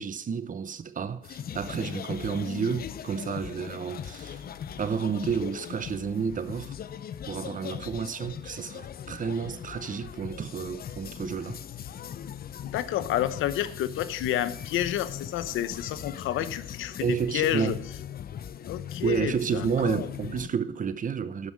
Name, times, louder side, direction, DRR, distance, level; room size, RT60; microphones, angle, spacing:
voice 1, 0.0-4.4 4.8-6.7 7.3-11.6 17.0-17.8 19.0-21.5, right 6 dB, 40° right, 0.8 m, -30 dB
sound 1, 1.2-20.5, left 9 dB, 50° left, 0.6 m, -40 dB
voice 2, 12.6-17.7 18.7-20.1, left 12 dB, 85° left, 0.8 m, -30 dB
11.5 x 5.3 x 7.5 m
cardioid pair, 90°, 20 cm